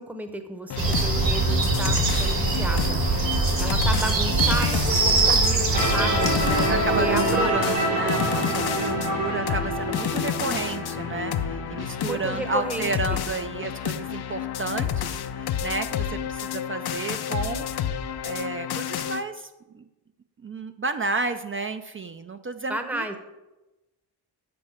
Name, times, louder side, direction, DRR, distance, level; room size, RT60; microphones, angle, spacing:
voice 1, 0.0-3.0 3.6-6.3 6.8-7.5 11.8-13.2 22.7-23.2, right 1 dB, 5° right, 7 dB, 0.8 m, -32 dB
sound 1, 0.7-19.2, left 9 dB, 65° left, 0.6 m, -30 dB
sound 2, 0.8-7.5, right 3 dB, 60° right, 1.6 m, -23 dB
sound 3, 5.7-12.5, right 1 dB, 80° right, 2.2 m, -27 dB
voice 2, 6.5-17.7 17.9-19.5 19.7-19.8 20.4-23.1, right 3 dB, 30° right, 8 dB, 0.4 m, -32 dB
7.7 x 5.3 x 7.0 m, 1.0 s
wide cardioid pair, 130°, 41 cm